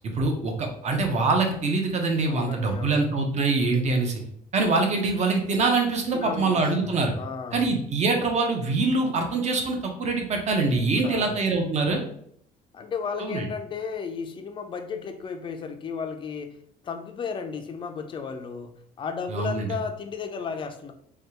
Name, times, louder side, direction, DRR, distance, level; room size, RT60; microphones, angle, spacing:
voice 1, 0.1-4.2 4.5-7.1 7.5-12.0 13.2-13.5 19.3-19.7, right 3 dB, 45° right, 3 dB, 0.7 m, -24 dB
voice 2, 2.2-3.2 6.1-7.7 11.0-11.4 12.7-16.6 16.8-20.9, left 5 dB, 30° left, 6 dB, 0.4 m, -34 dB
3.3 x 2.3 x 2.8 m, 0.66 s
cardioid pair, 110°, 17 cm